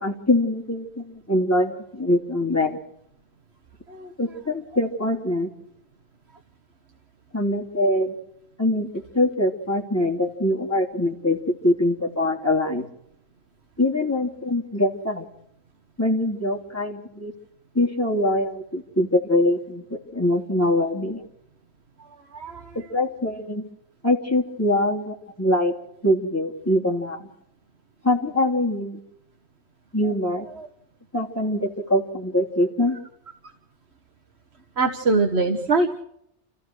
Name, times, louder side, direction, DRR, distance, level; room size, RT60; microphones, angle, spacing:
voice 1, 0.0-2.8 4.2-5.5 7.3-8.1 8.6-12.9 13.8-15.3 16.0-17.3 17.7-21.2 22.7-23.6 24.0-25.7 26.0-27.3 28.0-29.0 29.9-30.5 31.1-33.0, left 1 dB, 15° left, 0 dB, 3.3 m, -23 dB
voice 2, 22.2-22.8 30.0-30.1 30.5-30.7 34.8-36.0, right 3 dB, 70° right, 5 dB, 1.8 m, -23 dB
29.0 x 15.5 x 6.4 m, 0.77 s
omnidirectional pair, 1.1 m